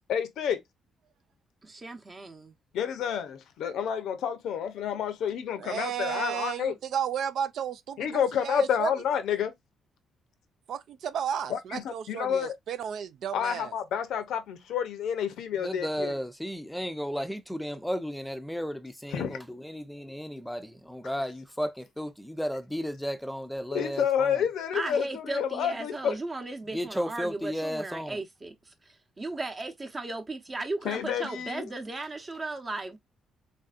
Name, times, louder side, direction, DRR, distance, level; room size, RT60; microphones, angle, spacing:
voice 1, 0.1-0.6 2.7-6.7 8.0-9.5 11.5-12.5 13.3-16.1 19.1-19.3 23.7-26.2 30.8-31.7, left 8 dB, 80° left, 0.6 m, -29 dB
voice 2, 1.6-2.5 24.7-33.0, right 2 dB, 30° right, 0.8 m, -36 dB
voice 3, 5.6-8.9 10.7-13.7, right 8 dB, 70° right, 0.4 m, -33 dB
voice 4, 15.6-24.4 26.7-28.2, equal, ahead, 0.5 m, -34 dB
3.3 x 2.6 x 2.4 m
cardioid pair, 90°, 0 cm